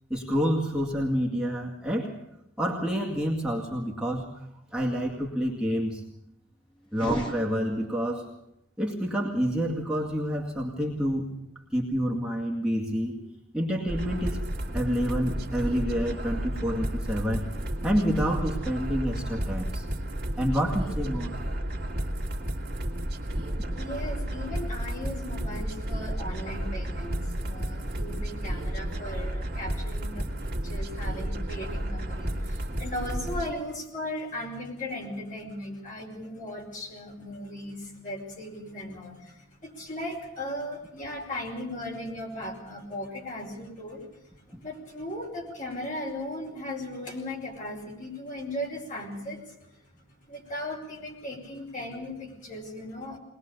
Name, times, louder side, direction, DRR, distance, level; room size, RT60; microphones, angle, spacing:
voice 1, 0.1-2.1 2.6-4.5 4.7-6.0 6.9-8.3 8.8-11.3 11.7-13.2 13.5-14.4 14.7-17.5 17.8-19.9 20.4-21.3 23.6-23.8 44.5-44.6, equal, 5° right, -3 dB, 2.1 m, -28 dB
sound 1, 6.9-8.2, equal, 25° left, 1.6 m, -36 dB
sound 2, 13.9-33.5, right 1 dB, 50° right, 2.1 m, -32 dB
voice 2, 23.8-44.0 44.6-49.5 50.3-53.2, left 1 dB, 40° left, 0 dB, 5.0 m, -37 dB
22.0 x 20.0 x 6.8 m, 0.84 s
head